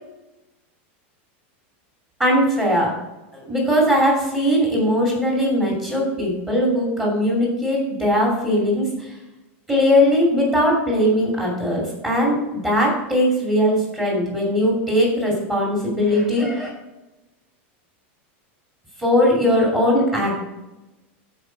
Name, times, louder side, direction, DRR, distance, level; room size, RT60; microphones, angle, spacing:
voice 1, 2.2-2.9 3.3-9.1 9.7-16.7 19.0-20.4, equal, 10° right, -4 dB, 2.8 m, -20 dB
15.0 x 5.1 x 4.7 m, 1.0 s
supercardioid pair, 170°, 7 cm